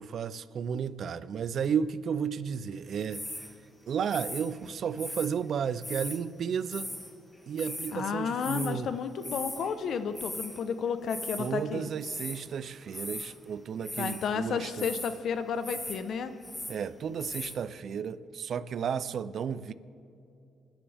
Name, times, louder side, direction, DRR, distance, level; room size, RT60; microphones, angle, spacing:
voice 1, 0.0-3.2 3.9-6.9 7.5-8.9 11.4-14.9 16.7-19.7, right 7 dB, 60° right, 0.5 m, -33 dB
sound 1, 3.1-3.5 4.1-5.3 5.8-6.2 6.7-7.1 7.4-7.9 8.4-8.7 9.2-9.7 10.0-10.6 11.1-11.5 12.0-12.5 12.9-13.4 13.8-14.3 14.8-15.2 15.6-16.0 16.3-16.8 17.2-17.5, left 1 dB, 10° left, 1.7 m, -39 dB
voice 2, 7.9-11.9 14.0-16.3, left 6 dB, 65° left, 0.9 m, -32 dB
27.5 x 10.0 x 3.5 m
cardioid pair, 90°, 0 cm